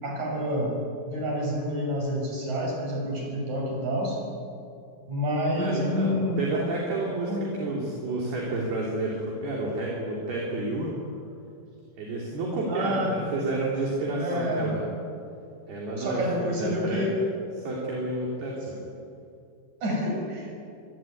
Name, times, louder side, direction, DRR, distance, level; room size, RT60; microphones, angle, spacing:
voice 1, 0.0-0.7 1.1-4.2 5.1-6.6 7.3-7.5 12.7-13.2 14.2-14.7 16.0-17.2 18.7-18.8 19.8-20.5, equal, 40° right, 0 dB, 7.8 m, -28 dB
voice 2, 5.6-7.3 7.6-11.0 12.0-14.8 15.7-17.1 17.6-18.7, right 2 dB, 60° right, -2 dB, 5.2 m, -30 dB
25.0 x 22.5 x 9.4 m, 2.5 s
omnidirectional pair, 5.5 m